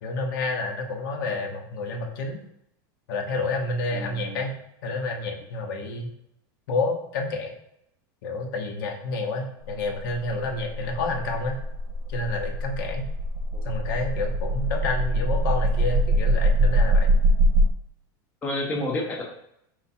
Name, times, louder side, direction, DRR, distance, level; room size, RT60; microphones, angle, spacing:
voice 1, 0.0-2.4 3.1-4.5 4.8-6.1 6.7-7.6 8.2-11.6 12.1-13.1 13.6-17.1, left 3 dB, 75° left, 2 dB, 0.8 m, -29 dB
voice 2, 3.9-4.4 13.5-13.7 18.4-19.2, left 1 dB, 15° left, -2 dB, 0.6 m, -30 dB
sound 1, 9.7-17.7, right 1 dB, 35° right, 0.4 m, -23 dB
4.4 x 2.4 x 4.1 m, 0.77 s
supercardioid pair, 175°, 11 cm